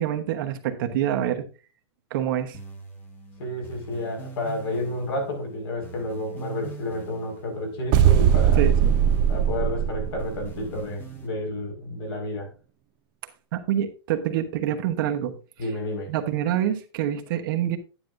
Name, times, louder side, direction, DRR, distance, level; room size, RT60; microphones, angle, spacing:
voice 1, 0.0-1.5 2.1-2.6 8.6-9.0 13.5-15.4 16.1-17.8, right 10 dB, 50° right, 1.1 m, -26 dB
sound 1, 2.5-11.3, right 4 dB, 15° left, 1.4 m, -43 dB
voice 2, 3.4-8.6 9.3-12.5 15.6-16.1, left 1 dB, 65° left, 5.1 m, -31 dB
sound 2, 7.9-10.6, right 9 dB, 30° right, 0.6 m, -20 dB
10.5 x 9.9 x 2.6 m
supercardioid pair, 165°, 14 cm